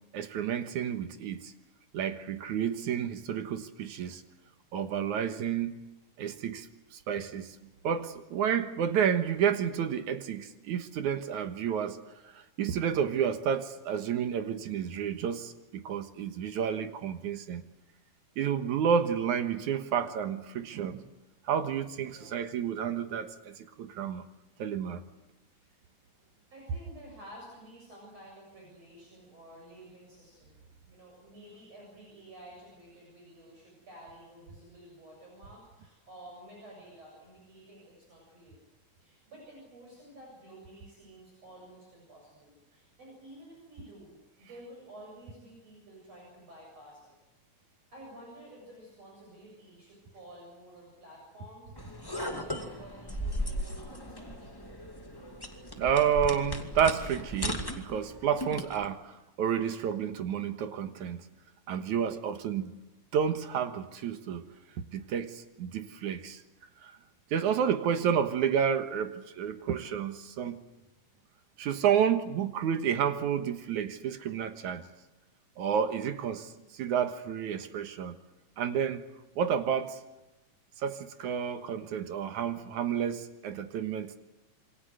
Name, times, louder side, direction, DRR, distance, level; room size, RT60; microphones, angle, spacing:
voice 1, 0.1-1.5 1.9-4.2 4.7-5.7 6.2-6.7 6.9-7.6 7.8-12.0 12.3-17.6 18.4-21.1 21.5-24.2 24.6-25.0 55.8-61.2 61.7-62.7 63.1-64.5 64.9-66.4 66.8-66.9 67.3-70.6 71.6-74.8 75.6-78.2 78.6-79.0 79.4-80.0 80.8-84.2, right 8 dB, 70° right, 9 dB, 2.7 m, -30 dB
voice 2, 26.5-30.6 30.9-38.6 39.0-47.1 47.9-54.5 76.4-76.6, right 1 dB, 50° right, -2 dB, 8.5 m, -51 dB
sound 1, 51.8-58.9, equal, 10° left, 1.8 m, -37 dB
27.5 x 23.5 x 8.0 m, 1.0 s
omnidirectional pair, 3.7 m